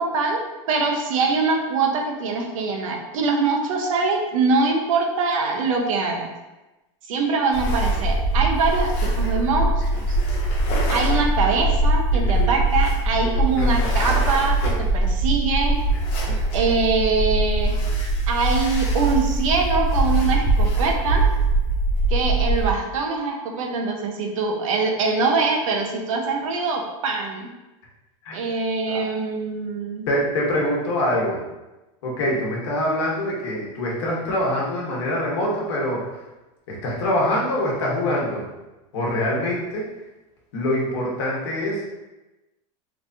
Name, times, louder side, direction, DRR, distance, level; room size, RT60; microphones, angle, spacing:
voice 1, 0.0-6.3 7.1-10.2 10.9-15.7 16.5-17.7 18.3-21.3 22.1-27.5 28.3-30.1, right 4 dB, 85° right, 2 dB, 0.7 m, -23 dB
sound 1, 7.5-22.7, right 2 dB, 35° left, 0.6 m, -22 dB
voice 2, 13.6-13.9 16.3-16.4 28.2-28.4 28.8-29.0 30.1-31.4 32.0-36.0 36.7-38.4 38.9-39.9 40.5-41.9, left 1 dB, 60° left, -3 dB, 1.1 m, -24 dB
3.3 x 3.2 x 2.6 m, 1.1 s
supercardioid pair, 180°, 17 cm